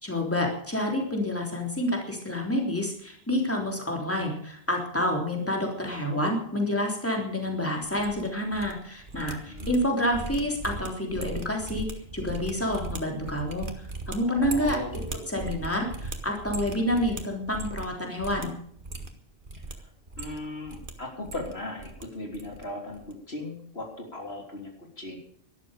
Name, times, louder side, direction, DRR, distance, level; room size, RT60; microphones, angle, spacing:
voice 1, 0.0-11.9 12.1-13.7 14.1-15.0 15.3-18.5, left 1 dB, 15° left, 1 dB, 3.5 m, -28 dB
sound 1, 7.8-8.7 9.0-17.9 18.2-18.5 18.8-19.7 20.1-20.9 21.2-22.0 22.3-22.6 22.9-23.1, right 2 dB, 55° right, 1.9 m, -38 dB
voice 2, 9.3-9.8 14.3-15.6 19.5-19.9 20.2-25.2, left 2 dB, 80° left, 2 dB, 3.7 m, -38 dB
12.5 x 12.5 x 6.7 m, 0.62 s
omnidirectional pair, 1.0 m